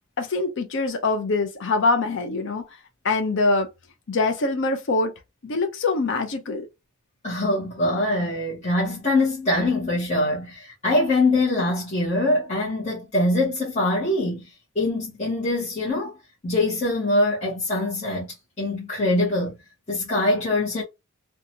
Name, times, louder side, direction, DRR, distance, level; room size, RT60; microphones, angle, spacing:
voice 1, 0.2-2.6 3.0-3.7 4.1-5.1 5.4-6.7, left 3 dB, 55° left, 0.5 m, -24 dB
voice 2, 7.2-14.4 14.7-16.1 16.4-18.3 18.6-19.5 19.9-20.8, left 2 dB, 30° left, 0.9 m, -23 dB
2.7 x 2.3 x 2.7 m
head